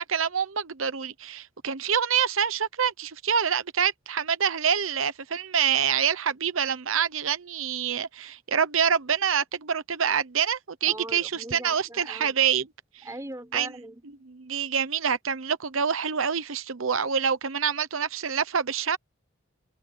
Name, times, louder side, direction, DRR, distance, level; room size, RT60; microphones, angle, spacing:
voice 1, 0.0-12.6 13.5-13.7 14.5-19.0, right 7 dB, 80° right, 1.0 m, -26 dB
voice 2, 10.9-12.4 13.0-14.3, right 1 dB, 15° right, 6.7 m, -40 dB
head